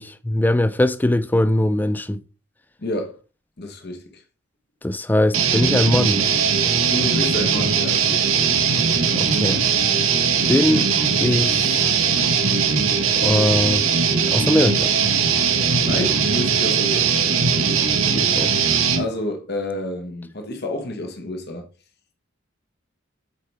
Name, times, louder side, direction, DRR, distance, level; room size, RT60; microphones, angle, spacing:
voice 1, 0.0-2.2 4.8-6.2 9.2-9.6 10.5-10.9 11.2-11.8 13.2-13.8 14.3-14.9 18.4-18.5, left 1 dB, 10° left, 0.3 m, -20 dB
voice 2, 2.8-3.2 3.6-4.2 6.9-8.2 15.8-17.3 18.1-18.4 18.9-21.6, left 1 dB, 50° left, 1.1 m, -29 dB
sound 1, 5.3-19.1, right 6 dB, 80° right, 1.1 m, -20 dB
8.3 x 4.5 x 3.4 m
head